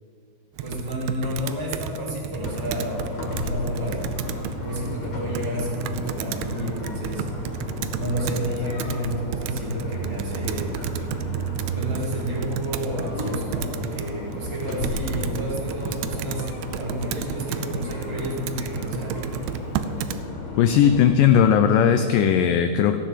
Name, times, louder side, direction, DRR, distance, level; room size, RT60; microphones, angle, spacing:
voice 1, 0.6-4.0 4.6-7.3 7.9-10.8 11.7-19.3 19.7-19.8, equal, 10° right, -7 dB, 1.4 m, -31 dB
Computer keyboard, 0.6-20.2, right 8 dB, 85° right, 2.6 m, -32 dB
sound 1, 2.4-21.0, left 2 dB, 50° left, 2.9 m, -34 dB
sound 2, 4.7-17.1 17.7-17.8, left 1 dB, 30° right, 0.4 m, -41 dB
voice 2, 20.6-23.0, left 8 dB, 80° left, 8 dB, 2.0 m, -18 dB
15.0 x 9.9 x 7.5 m, 2.6 s
omnidirectional pair, 4.5 m